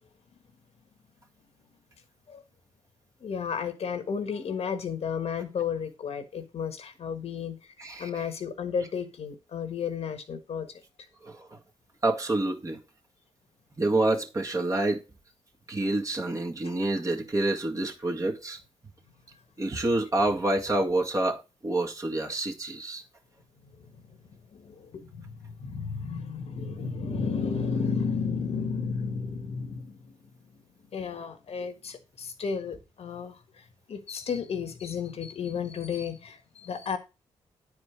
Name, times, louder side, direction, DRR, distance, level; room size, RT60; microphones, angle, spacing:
voice 1, 3.2-7.6 8.0-10.7 16.6-16.7 24.5-30.1 30.9-33.4 33.9-37.0, left 6 dB, 65° left, 1.5 m, -33 dB
voice 2, 7.8-8.1 11.2-11.5 12.0-12.8 13.8-15.0 15.7-18.6 19.6-23.0, right 2 dB, 30° right, 1.9 m, -27 dB
9.5 x 4.9 x 5.0 m
cardioid pair, 65°, 11 cm